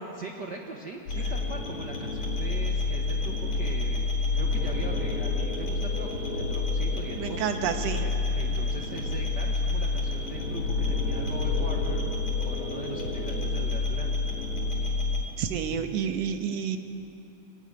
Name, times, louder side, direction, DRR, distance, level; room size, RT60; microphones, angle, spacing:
voice 1, 0.1-7.4 8.0-12.0 12.4-14.1, right 3 dB, 45° right, 1 dB, 1.5 m, -41 dB
sound 1, 1.1-15.2, left 3 dB, 65° left, 5.6 m, -28 dB
voice 2, 7.2-8.0 15.4-16.8, right 7 dB, 65° right, 7 dB, 2.3 m, -29 dB
23.0 x 18.0 x 9.7 m, 2.9 s
omnidirectional pair, 3.3 m